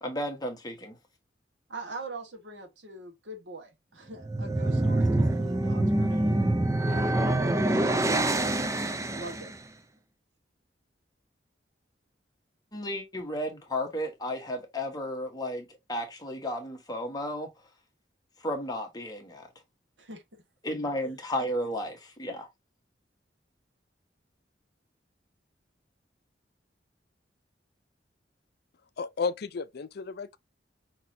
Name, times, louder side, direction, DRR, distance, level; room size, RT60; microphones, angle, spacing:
voice 1, 0.0-1.0 5.7-6.5 12.7-17.5 18.4-19.5 20.6-22.5, equal, 20° left, 1.3 m, -33 dB
voice 2, 1.7-6.5 6.9-8.4 9.1-9.5 20.0-20.4 21.0-21.1, right 2 dB, 80° right, 1.5 m, -43 dB
sound 1, 4.1-9.6, right 1 dB, 15° right, 0.5 m, -26 dB
voice 3, 29.0-30.4, left 5 dB, 60° left, 0.5 m, -33 dB
5.8 x 3.1 x 2.6 m
head